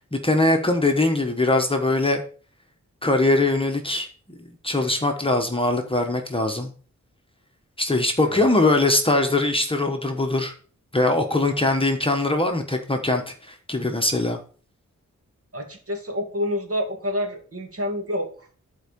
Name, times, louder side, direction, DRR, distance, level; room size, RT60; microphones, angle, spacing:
voice 1, 0.0-2.2 3.0-6.7 7.8-10.5 10.9-14.4, left 2 dB, 20° left, 4 dB, 1.2 m, -22 dB
voice 2, 15.5-18.5, left 1 dB, 50° right, 2 dB, 2.6 m, -28 dB
11.5 x 4.7 x 5.3 m, 0.41 s
wide cardioid pair, 105°, 29 cm